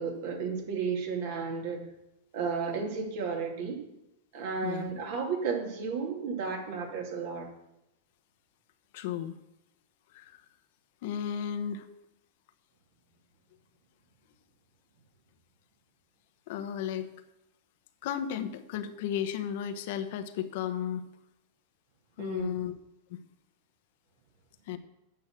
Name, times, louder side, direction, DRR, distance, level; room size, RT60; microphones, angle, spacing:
voice 1, 0.0-1.9 2.3-3.8 4.3-7.5 22.2-22.6, right 5 dB, 65° right, 1 dB, 2.6 m, -33 dB
voice 2, 8.9-9.4 10.1-10.4 11.0-11.9 16.5-17.1 18.0-21.0 22.2-22.7 23.1-23.2 24.7-24.8, left 9 dB, 65° left, 9 dB, 0.9 m, -34 dB
8.5 x 6.2 x 7.4 m, 0.87 s
hypercardioid pair, 115°, 0 cm